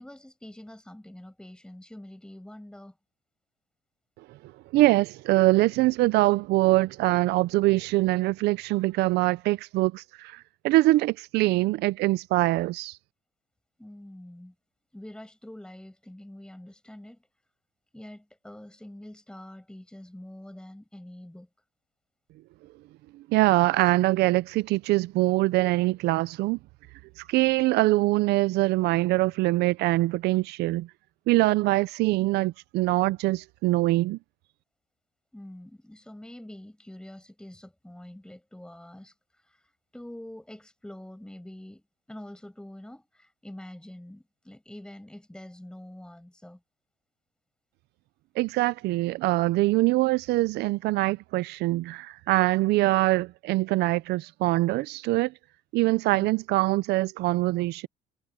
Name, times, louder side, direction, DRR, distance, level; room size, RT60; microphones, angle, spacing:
voice 1, 0.0-3.0 13.8-14.5 14.9-17.2 17.9-21.5 35.3-46.6 56.1-56.3, left 1 dB, 5° left, 7.9 m, -45 dB
voice 2, 4.7-10.4 10.6-13.0 23.3-26.6 27.3-30.9 31.3-34.2 48.4-55.3 55.7-57.9, right 19 dB, 80° right, 0.5 m, -23 dB
cardioid pair, 110°, 17 cm